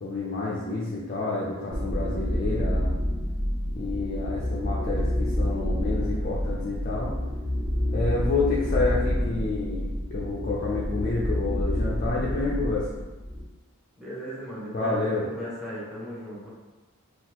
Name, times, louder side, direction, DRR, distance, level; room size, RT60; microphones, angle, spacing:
voice 1, 0.0-2.9 3.8-7.1 7.9-12.9 14.7-15.3, left 3 dB, 40° left, -5 dB, 0.5 m, -29 dB
sound 1, 1.7-13.4, equal, 45° right, 1.4 m, -28 dB
voice 2, 14.0-16.5, equal, ahead, -8 dB, 1.0 m, -37 dB
3.8 x 2.4 x 2.9 m, 1.2 s
head